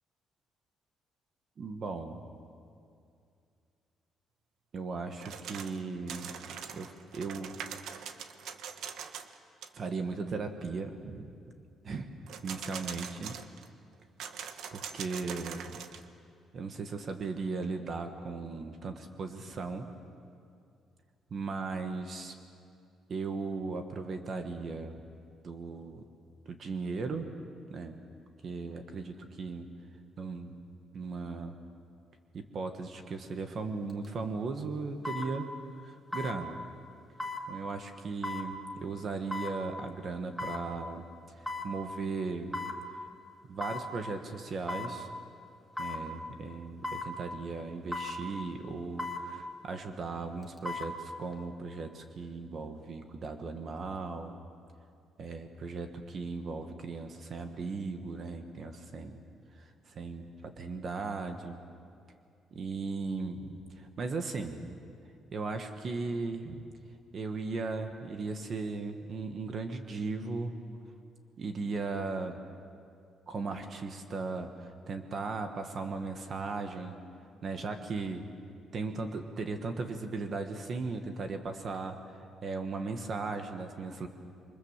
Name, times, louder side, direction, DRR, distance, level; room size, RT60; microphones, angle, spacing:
voice 1, 1.6-2.2 4.7-6.3 6.7-7.5 7.8-8.0 9.7-11.3 11.8-12.1 12.4-13.4 14.7-15.8 16.5-19.9 21.3-22.3 23.1-25.0 25.4-26.0 26.4-27.3 27.7-28.0 28.4-29.7 30.2-30.6 30.9-31.6 32.3-35.5 35.7-36.6 37.5-41.0 41.4-42.6 43.5-45.1 45.8-54.4 55.2-59.2 59.5-61.6 62.5-64.8 65.3-66.7 67.1-70.6 71.4-72.4 73.3-77.0 77.4-78.3 78.7-84.1, right 4 dB, 35° right, 6 dB, 1.4 m, -37 dB
sound 1, 5.2-5.8 6.1-9.4 9.6-9.7 12.3-13.7 14.2-16.1, right 7 dB, 70° right, 1.3 m, -42 dB
sound 2, 33.9-34.0 35.0-35.3 36.1-36.4 37.2-37.4 38.2-38.5 39.3-39.5 40.4-40.6 41.5-41.7 42.5-42.8 43.6-43.9 44.7-44.9 45.8-46.0 46.8-47.1 47.9-48.2 49.0-49.2 50.4-50.9 51.3-51.4, left 3 dB, ahead, 1.9 m, -36 dB
27.5 x 24.0 x 7.4 m, 2.4 s
cardioid pair, 175°, 0 cm